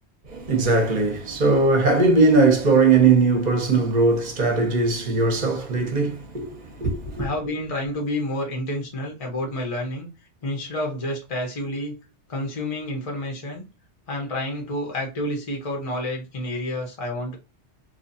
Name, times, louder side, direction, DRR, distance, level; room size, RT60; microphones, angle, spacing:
voice 1, 0.3-7.3, right 3 dB, 40° right, 0.9 m, -19 dB
voice 2, 7.2-10.1 10.4-11.9 12.3-13.6 14.1-17.4, left 1 dB, 35° left, 0.8 m, -29 dB
2.8 x 2.4 x 2.6 m
omnidirectional pair, 1.2 m